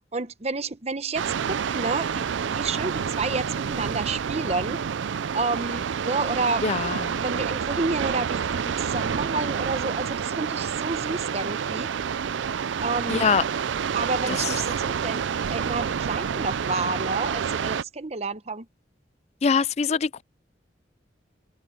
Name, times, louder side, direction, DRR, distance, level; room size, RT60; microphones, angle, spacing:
voice 1, 0.0-4.8 5.3-6.7 7.2-11.9 12.8-13.3 13.9-18.7, right 3 dB, 35° right, 0.9 m, -30 dB
sound 1, 1.1-17.8, right 7 dB, 75° right, 0.4 m, -28 dB
voice 2, 6.6-7.2 13.1-13.4 19.4-20.2, left 5 dB, 35° left, 0.3 m, -23 dB
head